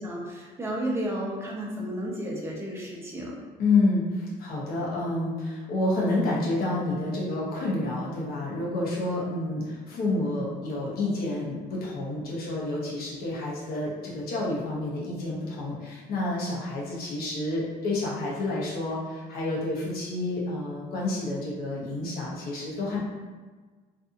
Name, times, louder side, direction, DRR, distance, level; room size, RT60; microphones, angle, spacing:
voice 1, 0.0-3.3, right 1 dB, 15° right, -4 dB, 0.7 m, -32 dB
voice 2, 3.6-23.0, left 2 dB, 65° left, -5 dB, 0.9 m, -29 dB
2.6 x 2.5 x 2.4 m, 1.4 s
cardioid pair, 110°, 17 cm